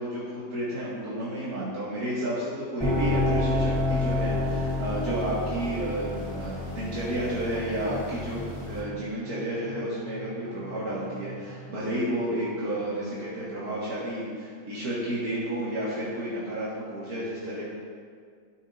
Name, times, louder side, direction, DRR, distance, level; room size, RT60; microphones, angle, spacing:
voice 1, 0.0-17.6, right 1 dB, 85° right, -9 dB, 2.1 m, -31 dB
sound 1, 2.8-8.8, left 2 dB, 20° left, 2.2 m, -29 dB
sound 2, 6.0-13.4, equal, 40° left, 2.8 m, -45 dB
12.5 x 8.3 x 2.6 m, 2.1 s
omnidirectional pair, 1.6 m